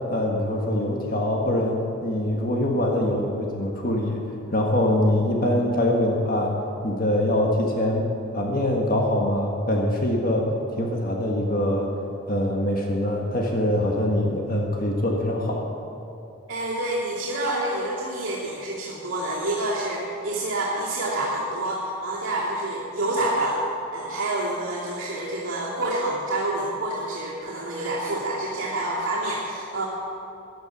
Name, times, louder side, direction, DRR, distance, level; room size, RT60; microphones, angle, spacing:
voice 1, 0.1-4.2 4.5-6.5 6.8-10.5 10.8-11.9 12.3-15.6, left 1 dB, 45° left, 0 dB, 1.5 m, -23 dB
voice 2, 16.5-23.6 23.9-29.9, right 1 dB, 65° right, -8 dB, 2.6 m, -28 dB
15.0 x 10.5 x 6.1 m, 2.8 s
head